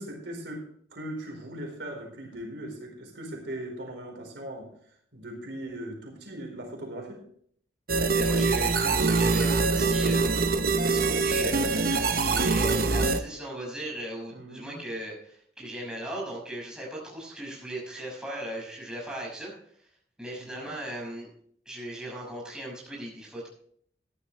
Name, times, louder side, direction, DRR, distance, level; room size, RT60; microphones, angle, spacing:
voice 1, 0.0-4.7 5.1-7.2 14.3-14.8 20.4-20.7, right 1 dB, 85° right, 1 dB, 4.3 m, -39 dB
sound 1, 7.9-13.2, right 3 dB, 55° right, 1.0 m, -24 dB
voice 2, 8.1-10.4 10.7-11.6 12.1-19.7 20.2-21.3 21.7-23.5, right 1 dB, 5° right, -4 dB, 6.0 m, -37 dB
14.5 x 11.5 x 3.3 m, 0.62 s
head